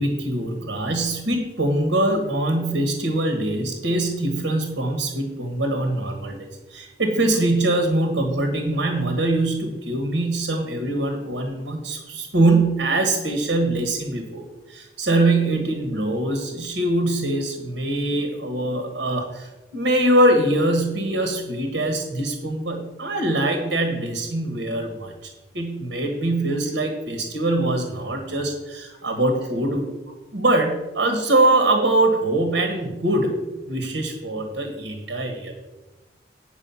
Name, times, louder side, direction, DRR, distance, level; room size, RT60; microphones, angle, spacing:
voice 1, 0.0-29.9 30.3-33.4 33.7-35.5, right 1 dB, 85° right, 4 dB, 1.4 m, -23 dB
9.2 x 4.9 x 7.0 m, 1.1 s
head